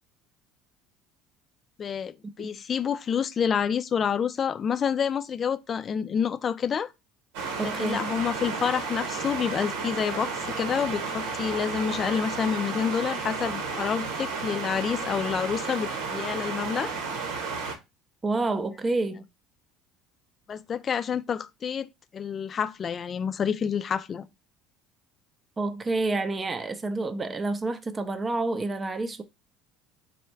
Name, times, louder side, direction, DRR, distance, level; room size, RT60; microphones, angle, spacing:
voice 1, 1.8-6.9 7.6-17.0 20.5-21.9 22.1-24.3, left 7 dB, 35° left, 0.4 m, -28 dB
sound 1, 7.3-17.8, right 4 dB, 85° right, 1.1 m, -32 dB
voice 2, 7.6-8.1 18.2-19.2 25.6-29.2, right 3 dB, 25° right, 0.5 m, -29 dB
4.2 x 2.3 x 4.4 m
supercardioid pair, 95°, 0 cm